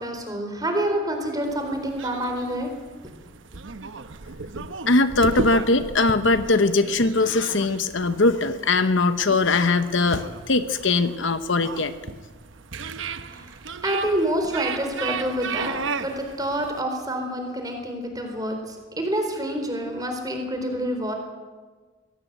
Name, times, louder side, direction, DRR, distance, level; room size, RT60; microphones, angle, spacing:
voice 1, 0.0-2.7 13.2-21.2, right 1 dB, 20° right, 4 dB, 4.0 m, -27 dB
sound 1, 1.4-16.8, right 4 dB, 65° right, 0.9 m, -35 dB
voice 2, 4.6-11.9, left 3 dB, 60° left, 11 dB, 1.0 m, -21 dB
23.0 x 17.0 x 8.2 m, 1.4 s
head